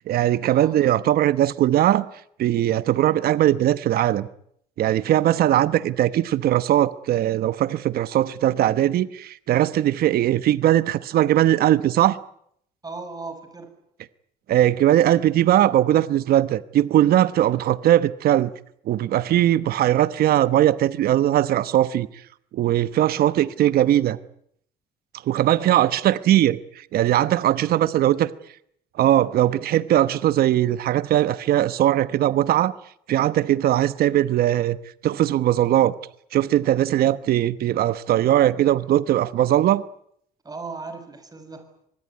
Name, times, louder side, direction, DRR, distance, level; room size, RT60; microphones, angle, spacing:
voice 1, 0.1-2.1 2.4-4.3 4.8-12.2 14.5-18.5 18.9-22.1 22.5-24.2 25.3-28.3 29.0-32.7 33.1-34.8 35.0-35.9 36.3-39.8, right 12 dB, 65° right, 1.0 m, -20 dB
voice 2, 12.8-13.7 25.5-25.9 27.6-28.2 40.4-41.7, right 3 dB, 20° right, 6.6 m, -37 dB
25.0 x 20.5 x 9.6 m
cardioid pair, 110°, 17 cm